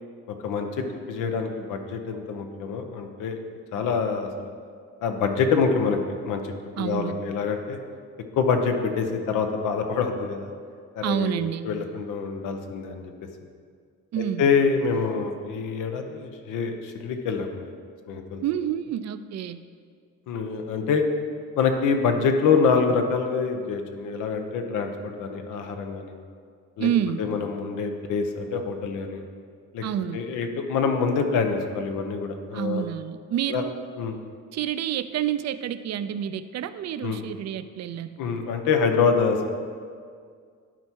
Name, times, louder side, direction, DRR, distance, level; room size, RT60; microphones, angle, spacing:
voice 1, 0.3-3.4 3.7-4.5 5.0-6.0 6.2-7.8 8.4-10.5 10.9-11.3 11.6-13.1 14.2-17.7 18.1-18.4 20.3-21.0 21.6-26.2 26.8-26.9 27.2-29.2 29.7-29.8 30.1-32.8 33.5-33.6 34.0-34.2 37.0-37.2 38.2-39.5, left 5 dB, 85° left, 5 dB, 0.9 m, -26 dB
voice 2, 6.8-7.2 11.0-11.7 14.1-14.5 18.4-19.6 26.8-27.2 29.8-30.2 32.5-33.7 34.5-38.2, right 10 dB, 60° right, 12 dB, 0.5 m, -28 dB
11.5 x 4.5 x 4.6 m, 2.1 s
cardioid pair, 90°, 30 cm